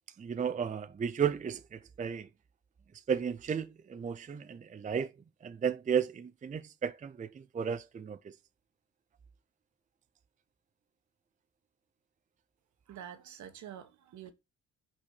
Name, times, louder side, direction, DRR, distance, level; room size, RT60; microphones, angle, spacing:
voice 1, 0.2-2.3 3.1-5.1 5.4-8.2, right 7 dB, 25° right, 0.5 m, -33 dB
voice 2, 12.9-14.3, right 10 dB, 70° right, 1.3 m, -47 dB
5.9 x 4.2 x 6.2 m
cardioid pair, 90°, 30 cm